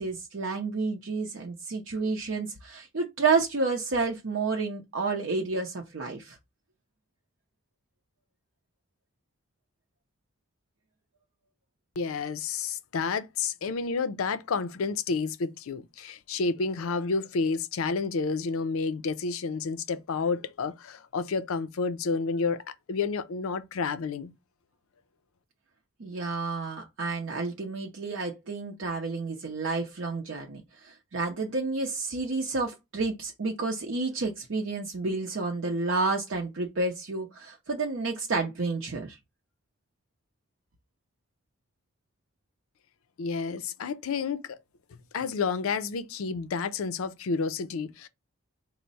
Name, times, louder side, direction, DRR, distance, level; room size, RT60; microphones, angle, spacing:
voice 1, 0.0-6.4 26.0-39.2, right 3 dB, 60° right, 0.6 m, -30 dB
voice 2, 12.0-22.6 22.9-24.3 43.2-44.6 45.1-48.1, left 4 dB, 80° left, 0.4 m, -30 dB
4.4 x 2.0 x 3.9 m
head